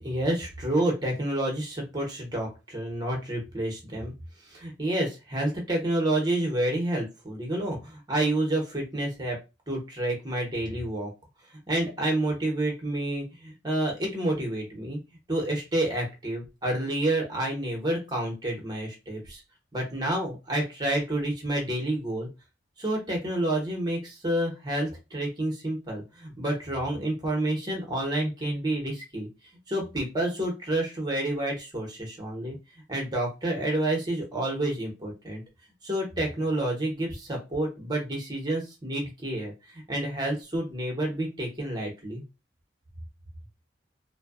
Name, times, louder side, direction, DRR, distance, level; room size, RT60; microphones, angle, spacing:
voice 1, 0.0-4.1 4.4-9.4 9.7-11.1 11.7-15.0 15.3-19.4 19.7-22.3 22.8-29.3 29.7-32.6 32.9-35.4 35.8-42.2, right 1 dB, 20° right, 0 dB, 0.8 m, -29 dB
2.6 x 2.2 x 2.3 m, 0.27 s
head